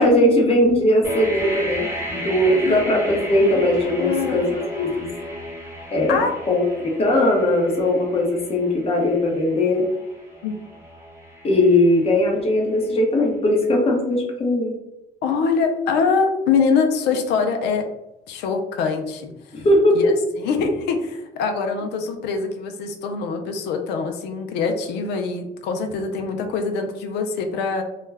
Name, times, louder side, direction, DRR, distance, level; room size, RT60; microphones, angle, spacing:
voice 1, 0.0-5.1 5.9-6.6 7.0-9.8 11.4-14.7 19.5-20.1, left 1 dB, 35° left, 0 dB, 0.8 m, -19 dB
sound 1, 1.0-12.8, equal, 15° right, 0.8 m, -34 dB
voice 2, 4.0-4.5 6.1-6.4 10.4-10.5 15.2-17.9 18.3-19.3 19.9-20.1 20.4-27.8, left 5 dB, 85° left, 5 dB, 0.5 m, -23 dB
2.3 x 2.1 x 3.2 m, 0.91 s
cardioid pair, 110°, 17 cm